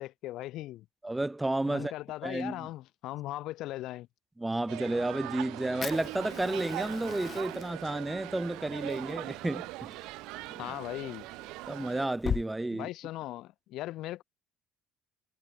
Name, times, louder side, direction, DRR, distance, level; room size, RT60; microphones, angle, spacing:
voice 1, 0.0-0.9 1.7-4.1 10.6-11.3 12.7-14.2, left 16 dB, 65° left, 0.5 m, -39 dB
voice 2, 1.0-1.9 2.2-2.7 4.4-10.0 11.7-12.9, right 2 dB, 10° right, 0.3 m, -32 dB
sound 1, 4.7-12.1, right 21 dB, 80° right, 1.9 m, -41 dB
Fire, 5.8-12.4, left 7 dB, 35° left, 0.9 m, -41 dB
cardioid pair, 135°, 0 cm